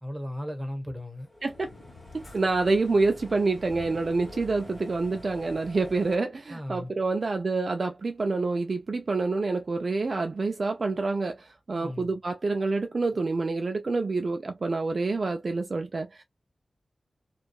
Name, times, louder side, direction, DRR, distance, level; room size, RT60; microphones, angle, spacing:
voice 1, 0.0-1.3 6.5-6.9 11.7-12.2, left 1 dB, 25° right, 1.1 m, -36 dB
sound 1, 1.1-6.2, left 1 dB, 35° left, 1.5 m, -46 dB
voice 2, 2.1-16.2, right 3 dB, 60° right, 0.4 m, -27 dB
2.7 x 2.3 x 2.3 m
wide cardioid pair, 60°, 0 cm